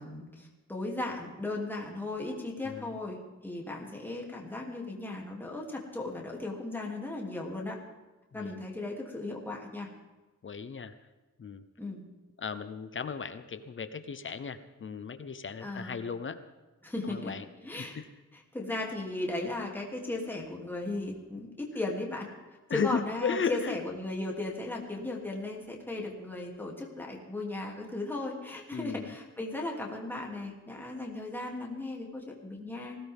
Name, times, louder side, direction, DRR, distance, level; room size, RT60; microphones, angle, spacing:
voice 1, 0.0-7.8 8.3-9.9 11.8-12.0 15.6-16.0 16.8-17.3 17.6-18.0 18.3-22.3 22.7-33.0, left 2 dB, 5° left, -1 dB, 2.8 m, -36 dB
voice 2, 8.3-8.6 10.4-10.9 11.4-11.6 12.4-16.4 17.1-17.4 17.8-18.1 22.7-23.8 25.0-25.1 28.7-29.1, left 6 dB, 40° left, 10 dB, 0.9 m, -35 dB
20.5 x 17.0 x 3.6 m, 1.2 s
wide cardioid pair, 170°, 31 cm